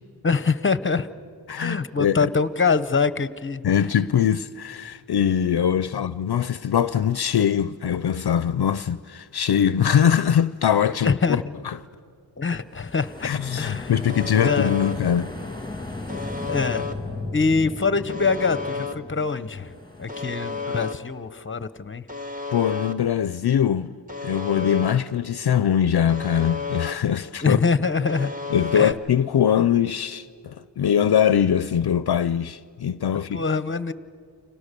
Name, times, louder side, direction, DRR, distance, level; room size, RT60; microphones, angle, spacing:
voice 1, 0.2-1.1 1.6-3.6 5.9-6.0 11.0-11.5 12.4-13.9 14.3-14.7 16.5-16.8 17.3-19.7 20.0-22.0 27.4-28.3 28.7-28.9 33.3-33.9, left 4 dB, 30° left, 0.8 m, -24 dB
voice 2, 1.5-2.3 3.6-11.8 13.2-15.3 22.5-23.9 24.2-27.6 28.5-33.4, left 9 dB, 65° left, 0.6 m, -22 dB
sound 1, 12.7-20.6, left 2 dB, 10° left, 2.1 m, -36 dB
Alarm, 14.1-14.9 16.1-16.9 18.1-18.9 20.1-20.9 22.1-22.9 24.1-24.9 26.1-26.9 28.1-28.9, left 4 dB, 20° right, 1.8 m, -31 dB
30.0 x 25.5 x 6.8 m
wide cardioid pair, 95°, 42 cm